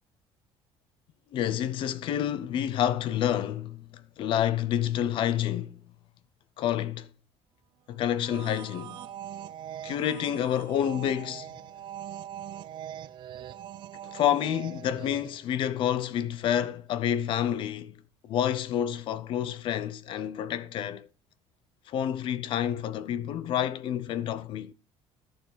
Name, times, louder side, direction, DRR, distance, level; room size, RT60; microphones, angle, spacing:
voice 1, 1.3-5.8 6.6-7.1 7.9-9.0 9.8-11.5 14.0-21.1 21.9-24.7, left 10 dB, 50° left, 0.8 m, -29 dB
sound 1, 8.1-15.5, right 11 dB, 45° right, 0.5 m, -42 dB
11.5 x 6.8 x 5.7 m
cardioid pair, 170°, 11 cm